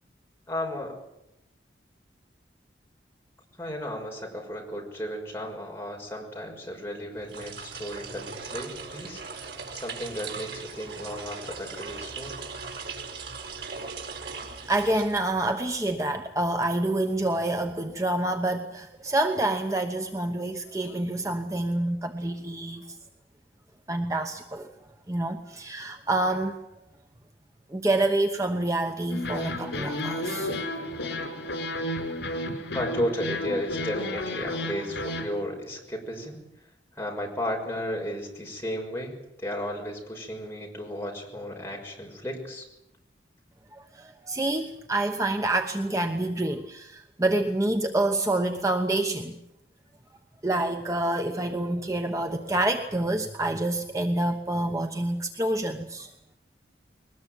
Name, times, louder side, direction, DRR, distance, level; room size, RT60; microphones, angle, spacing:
voice 1, 0.5-1.0 3.6-12.4 32.7-36.4 37.0-42.7, equal, 15° left, 0 dB, 6.1 m, -34 dB
sound 1, 7.2-15.6, right 5 dB, 65° right, 4.7 m, -39 dB
voice 2, 14.7-22.8 23.9-24.7 25.1-26.5 27.7-30.5 43.7-49.4 50.4-56.1, right 1 dB, 20° right, 5 dB, 1.1 m, -27 dB
sound 2, 29.1-35.3, left 1 dB, 80° left, 4.9 m, -32 dB
22.0 x 20.5 x 9.0 m, 0.87 s
head